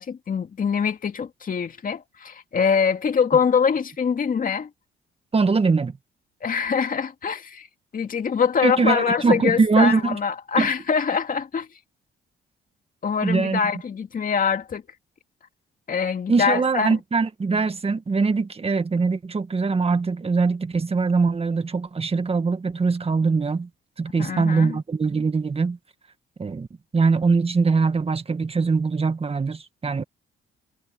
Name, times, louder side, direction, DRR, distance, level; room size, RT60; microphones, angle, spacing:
voice 1, 0.0-4.7 6.4-7.7 7.9-11.7 13.0-14.8 15.9-17.0 24.2-24.8, left 6 dB, 45° left, 2.2 m, -24 dB
voice 2, 5.3-5.9 8.6-10.2 10.6-10.7 13.2-13.6 16.3-23.7 24.0-25.8 26.4-26.7 26.9-30.0, right 4 dB, 30° right, 1.8 m, -22 dB
cardioid pair, 90°, 20 cm